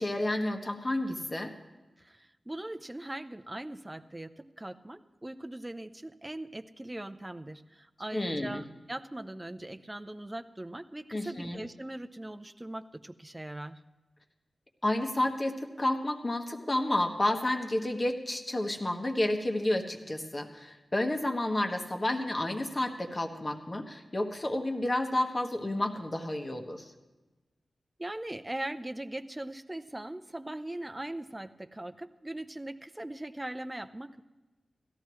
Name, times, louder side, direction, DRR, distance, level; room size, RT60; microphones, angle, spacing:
voice 1, 0.0-1.5 8.1-8.6 11.1-11.6 14.8-26.9, left 1 dB, 35° left, 4 dB, 1.5 m, -30 dB
voice 2, 2.0-13.8 28.0-34.2, right 1 dB, 20° right, 7 dB, 0.6 m, -40 dB
17.0 x 14.0 x 3.1 m, 1.2 s
cardioid pair, 55°, 0 cm